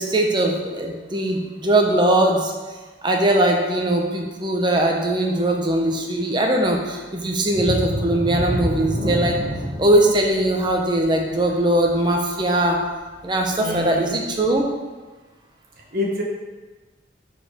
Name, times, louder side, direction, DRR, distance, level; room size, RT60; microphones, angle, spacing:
voice 1, 0.0-2.5 3.0-9.4 9.8-12.8 13.2-14.7, right 1 dB, 25° right, 1 dB, 0.8 m, -20 dB
sound 1, 7.5-13.0 13.4-13.5 14.0-14.1, equal, 75° right, 1.3 m, -28 dB
voice 2, 13.6-14.0 15.9-16.2, left 2 dB, 55° right, -2 dB, 1.3 m, -26 dB
4.9 x 4.8 x 5.1 m, 1.3 s
head